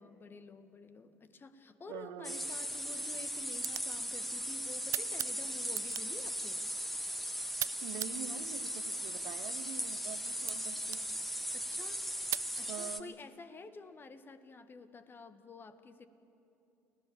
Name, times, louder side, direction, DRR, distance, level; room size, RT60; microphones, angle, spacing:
voice 1, 0.0-6.6 11.5-12.0 12.6-16.1, left 4 dB, 30° left, 10 dB, 1.6 m, -50 dB
voice 2, 1.9-2.5 7.8-11.0 12.7-13.2, right 11 dB, 65° right, 12 dB, 1.1 m, -45 dB
sound 1, 2.2-13.0, equal, ahead, 1.6 m, -38 dB
sound 2, 2.4-12.5, right 13 dB, 50° right, 0.5 m, -45 dB
30.0 x 18.0 x 7.2 m, 2.8 s
hypercardioid pair, 65°, 7 cm